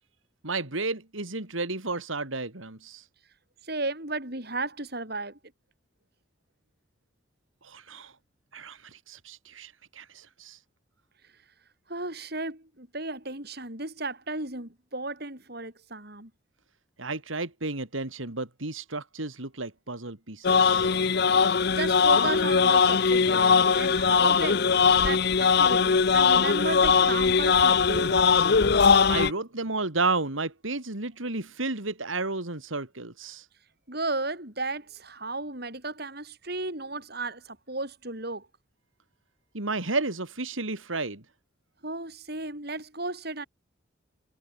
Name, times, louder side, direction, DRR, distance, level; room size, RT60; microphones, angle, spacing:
voice 1, 0.4-3.1 7.6-8.1 8.5-10.6 17.0-20.9 29.1-33.5 39.5-41.2, right 3 dB, 80° right, 3.1 m, -32 dB
voice 2, 3.6-5.4 11.9-16.3 21.7-28.2 33.9-38.5 41.8-43.5, right 2 dB, 50° right, 7.2 m, -34 dB
sound 1, 20.4-29.3, left 5 dB, 55° left, 0.7 m, -21 dB
head